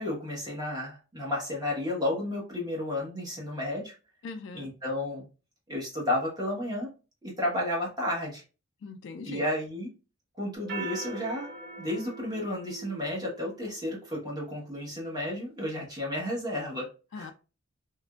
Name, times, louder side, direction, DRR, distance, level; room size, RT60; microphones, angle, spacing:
voice 1, 0.0-3.9 4.5-5.3 5.7-6.9 7.2-8.4 9.2-9.9 10.4-11.5 11.8-17.3, left 1 dB, 20° right, 1.1 m, -32 dB
voice 2, 4.2-4.7 8.8-9.4 17.1-17.3, left 4 dB, 60° left, 0.3 m, -40 dB
sound 1, 10.5-15.3, right 4 dB, 55° right, 1.5 m, -43 dB
2.9 x 2.4 x 2.3 m
head